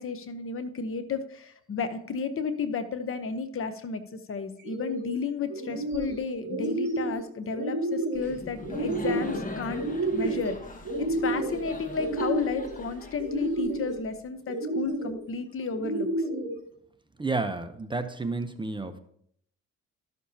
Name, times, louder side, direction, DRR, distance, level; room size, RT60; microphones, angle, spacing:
voice 1, 0.0-9.8 10.1-10.6 11.0-16.1, left 5 dB, 45° left, 10 dB, 0.9 m, -33 dB
sound 1, 4.6-5.1 5.5-6.2 6.4-7.2 7.5-8.2 8.6-9.4 9.7-10.5 10.8-11.6 12.0-12.7 13.2-13.9 14.5-15.2 15.7-16.5, right 2 dB, 40° right, 2.7 m, -30 dB
Laughter, 8.2-14.0, left 2 dB, 25° left, 1.4 m, -40 dB
voice 2, 17.2-19.0, right 3 dB, 15° right, 8 dB, 0.7 m, -31 dB
12.5 x 6.8 x 2.8 m, 0.66 s
cardioid pair, 90°, 30 cm